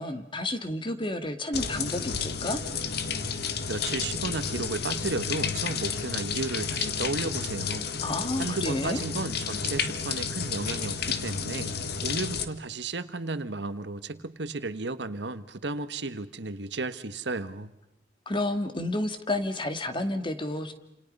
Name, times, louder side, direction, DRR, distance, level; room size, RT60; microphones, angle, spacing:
voice 1, 0.0-2.6 8.0-9.0 18.3-20.7, left 1 dB, 30° left, 9 dB, 2.0 m, -30 dB
sound 1, 1.5-12.4, left 6 dB, 60° left, 1.7 m, -31 dB
voice 2, 3.7-7.9 8.4-11.7 12.0-17.7, right 3 dB, 70° right, 12 dB, 1.3 m, -33 dB
29.5 x 28.0 x 5.4 m, 0.85 s
head